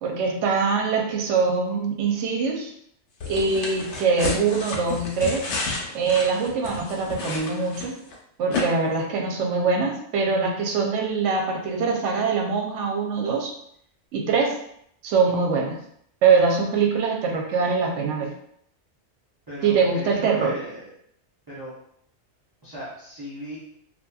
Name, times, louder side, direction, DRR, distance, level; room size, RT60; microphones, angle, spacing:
voice 1, 0.0-2.7 3.3-5.5 5.9-7.9 8.4-13.5 14.1-14.6 15.0-15.8 16.2-18.3 19.6-20.5, right 5 dB, 85° right, 1 dB, 0.9 m, -23 dB
sound 1, 3.2-8.1 8.5-8.6, left 3 dB, 75° left, 0.9 m, -31 dB
voice 2, 19.5-20.9 21.5-21.7 22.6-23.6, right 1 dB, 25° right, -10 dB, 0.6 m, -37 dB
2.8 x 2.3 x 2.2 m, 0.69 s
omnidirectional pair, 1.2 m